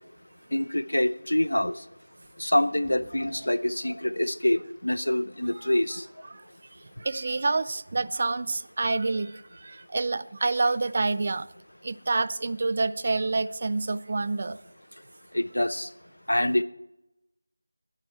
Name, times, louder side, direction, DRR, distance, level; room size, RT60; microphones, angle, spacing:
voice 1, 0.5-1.7 2.4-6.0 15.3-15.9 16.3-16.6, left 1 dB, 80° left, 16 dB, 0.7 m, -25 dB
sound 1, 2.2-2.3 2.7-3.7 4.8-4.9 5.4-5.5 5.7-6.1, right 2 dB, 15° right, 0.9 m, -49 dB
voice 2, 7.0-11.5 11.8-14.6, right 3 dB, 35° right, 17 dB, 0.4 m, -28 dB
12.5 x 10.5 x 4.4 m, 0.92 s
figure-of-eight pair, 170°, 0 cm